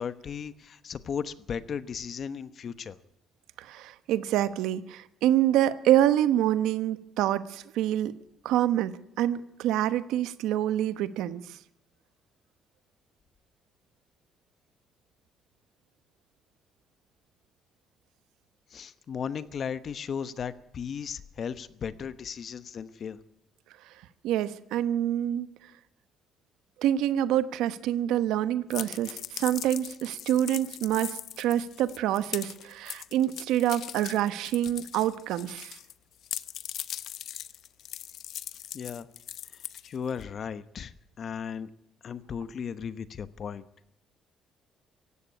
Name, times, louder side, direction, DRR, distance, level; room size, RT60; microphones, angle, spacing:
voice 1, 0.0-3.0 18.7-23.2 38.7-39.1 39.8-41.7 42.0-43.7, left 7 dB, 45° left, 14 dB, 1.1 m, -36 dB
voice 2, 3.6-8.1 8.4-11.6 24.2-25.5 26.8-35.8, right 12 dB, 90° right, 13 dB, 1.0 m, -26 dB
sound 1, 28.7-35.9 36.2-40.2, left 11 dB, 65° left, 0.8 m, -40 dB
17.0 x 15.5 x 9.8 m, 0.77 s
cardioid pair, 115°, 0 cm